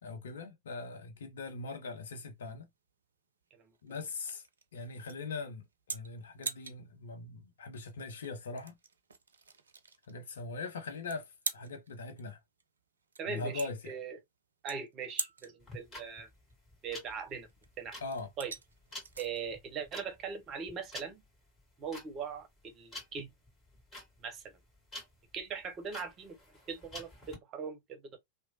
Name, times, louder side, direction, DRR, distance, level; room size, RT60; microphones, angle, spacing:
voice 1, 0.0-2.7 3.8-4.4 4.7-8.8 10.1-12.4 13.3-13.9 18.0-18.3, left 3 dB, 65° left, 0.6 m, -41 dB
sound 1, 2.0-20.8, right 4 dB, 70° right, 0.4 m, -46 dB
voice 2, 13.2-14.2 14.6-16.3 16.8-17.5 17.8-18.0 18.4-18.5 19.2-21.2 21.8-23.3 24.2-24.5 25.3-26.4 26.7-28.2, right 6 dB, 30° right, 0.7 m, -40 dB
sound 2, 15.6-27.4, left 1 dB, 20° left, 1.9 m, -49 dB
2.9 x 2.1 x 2.6 m
figure-of-eight pair, 90°, 0 cm